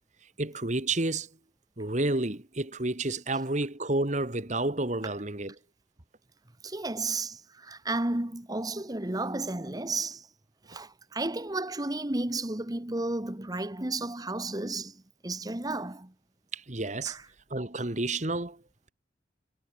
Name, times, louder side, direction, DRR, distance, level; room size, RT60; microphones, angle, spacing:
voice 1, 0.4-1.3 1.8-5.5 16.5-17.2 17.5-18.6, right 2 dB, 40° right, 1.8 m, -30 dB
voice 2, 6.6-10.3 10.7-16.1 17.0-17.2, right 2 dB, 20° right, 1.2 m, -33 dB
head